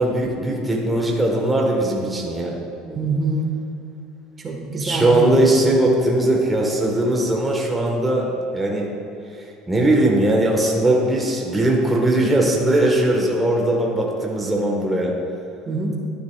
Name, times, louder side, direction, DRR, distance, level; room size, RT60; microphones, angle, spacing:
voice 1, 0.0-2.6 4.8-8.9 9.7-15.1, right 1 dB, 10° right, -2 dB, 1.4 m, -19 dB
voice 2, 2.8-3.5 4.4-5.5 15.7-15.9, right 3 dB, 30° right, 0 dB, 1.4 m, -25 dB
12.0 x 9.6 x 2.4 m, 2.6 s
supercardioid pair, 105°, 0 cm